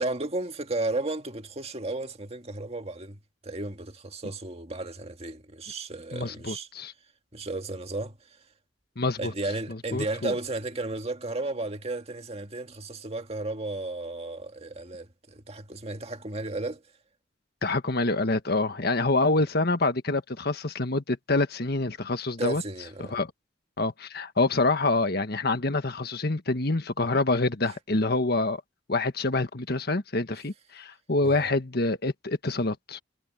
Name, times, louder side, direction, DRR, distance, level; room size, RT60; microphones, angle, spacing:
voice 1, 0.0-6.7 7.3-8.4 9.2-16.8 22.4-23.2 31.2-31.5, right 2 dB, 35° right, 1.9 m, -34 dB
voice 2, 6.1-6.9 9.0-9.3 9.7-10.3 17.6-22.6 23.1-23.3 23.8-28.6 28.9-33.0, left 2 dB, 55° left, 1.5 m, -26 dB
head